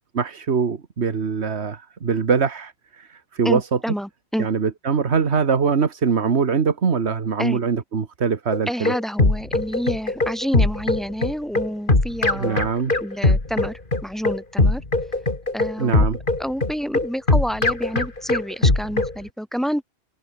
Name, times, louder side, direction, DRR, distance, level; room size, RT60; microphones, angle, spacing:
voice 1, 0.2-3.6 4.4-8.9 12.3-12.9 15.8-16.2, right 6 dB, 80° right, 1.7 m, -22 dB
voice 2, 3.4-4.5 7.4-7.6 8.7-12.7 13.0-14.8 15.5-16.0 16.4-19.8, equal, ahead, 6.4 m, -28 dB
sound 1, 8.5-19.1, left 2 dB, 50° left, 3.3 m, -20 dB
omnidirectional pair, 1.1 m